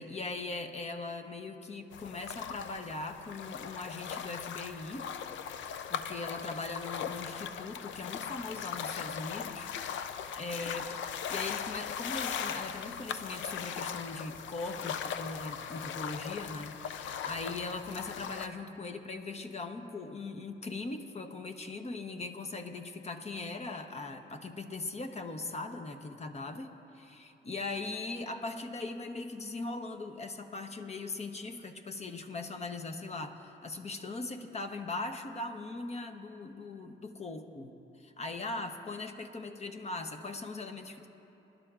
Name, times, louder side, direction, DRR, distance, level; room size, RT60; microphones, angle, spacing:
voice 1, 0.0-5.1 5.9-10.9 11.3-41.1, left 3 dB, 35° left, 6 dB, 0.9 m, -40 dB
sound 1, 1.9-18.5, left 8 dB, 70° left, 0.6 m, -39 dB
24.5 x 11.5 x 2.5 m, 3.0 s
cardioid pair, 90°, 20 cm